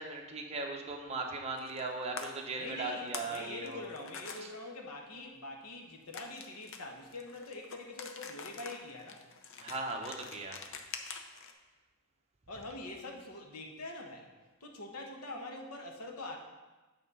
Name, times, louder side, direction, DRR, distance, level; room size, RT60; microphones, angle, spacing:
voice 1, 0.0-3.8 4.3-4.5 9.6-10.6, right 3 dB, 30° right, 1 dB, 0.9 m, -38 dB
sound 1, 1.6-1.9 2.2-2.3 2.8-3.4 3.7-4.4 6.1-11.5, left 6 dB, 60° left, 0.7 m, -45 dB
voice 2, 2.6-9.2 12.5-14.3 14.6-16.4, left 2 dB, 85° left, 2 dB, 1.2 m, -44 dB
8.2 x 4.2 x 5.5 m, 1.2 s
head